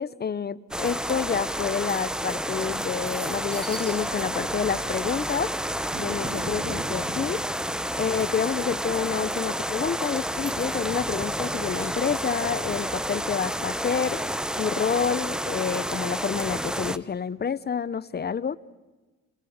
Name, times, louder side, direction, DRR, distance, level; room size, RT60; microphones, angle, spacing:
voice 1, 0.0-5.5 6.0-7.4 8.0-14.2 14.6-18.6, left 6 dB, 35° left, 0.8 m, -28 dB
sound 1, 0.7-17.0, equal, ahead, 0.8 m, -30 dB
sound 2, 0.8-1.2 1.6-14.9, right 1 dB, 30° right, 5.1 m, -43 dB
27.0 x 23.0 x 7.2 m
cardioid pair, 90°, 30 cm